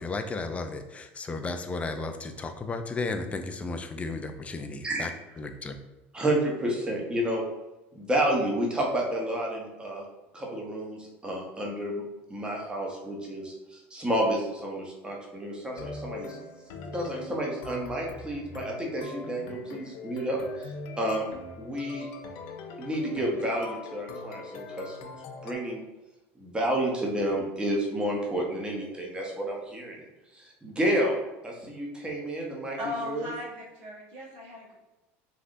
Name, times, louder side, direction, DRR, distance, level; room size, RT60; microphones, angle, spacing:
voice 1, 0.0-5.1 5.4-5.8, left 3 dB, 20° left, 7 dB, 0.3 m, -34 dB
voice 2, 6.1-7.5 7.9-10.1 10.3-12.0 12.3-16.4 16.9-21.3 21.6-22.1 22.8-25.0 25.4-25.8 26.4-30.1 30.3-33.3, right 1 dB, 15° right, -2 dB, 0.8 m, -30 dB
sound 1, 15.7-25.5, left 4 dB, 70° left, 0.5 m, -42 dB
voice 3, 32.8-34.7, left 2 dB, 75° right, -4 dB, 1.1 m, -37 dB
3.2 x 2.6 x 2.5 m, 1.0 s
supercardioid pair, 95°, 7 cm